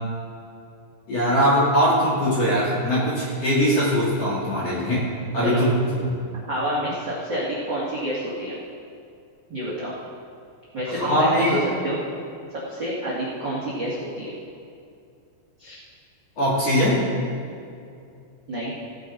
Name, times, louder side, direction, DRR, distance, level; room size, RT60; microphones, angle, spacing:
voice 1, 1.1-6.1 10.9-11.6 16.4-17.0, equal, 35° left, -7 dB, 3.4 m, -21 dB
voice 2, 6.5-8.6 9.5-9.9 10.7-12.0 12.6-14.3 15.6-15.8 18.5-18.7, equal, 40° right, -7 dB, 1.6 m, -28 dB
17.5 x 10.0 x 4.0 m, 2.5 s
omnidirectional pair, 5.6 m